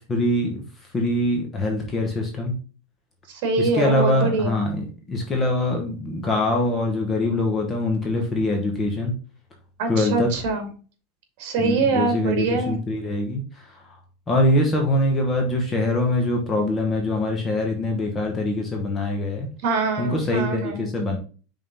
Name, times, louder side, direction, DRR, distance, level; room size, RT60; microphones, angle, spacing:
voice 1, 0.1-0.6 0.9-2.5 3.6-9.1 9.9-10.3 11.6-13.4 14.3-19.5 20.0-21.2, left 1 dB, 15° left, 1 dB, 1.0 m, -23 dB
voice 2, 3.3-4.6 9.8-10.7 11.4-12.8 19.6-20.9, right 4 dB, 55° right, 6 dB, 2.1 m, -24 dB
5.5 x 3.8 x 5.3 m, 0.38 s
supercardioid pair, 165°, 0 cm